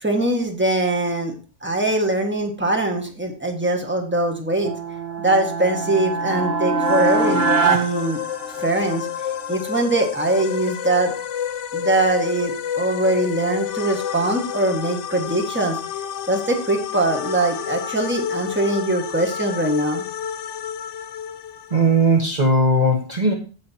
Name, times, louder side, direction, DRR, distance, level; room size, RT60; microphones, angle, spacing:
voice 1, 0.0-1.4 1.6-4.7 5.2-8.2 8.6-9.1 9.5-11.1 11.7-15.8 16.3-20.1, right 2 dB, 10° right, 2 dB, 1.7 m, -22 dB
sound 1, 4.6-8.9, right 4 dB, 60° right, 1.3 m, -23 dB
sound 2, 6.8-22.2, left 9 dB, 90° left, 1.0 m, -30 dB
voice 2, 21.7-23.3, right 1 dB, 40° right, 1 dB, 1.3 m, -18 dB
16.5 x 5.6 x 2.8 m, 0.35 s
omnidirectional pair, 1.2 m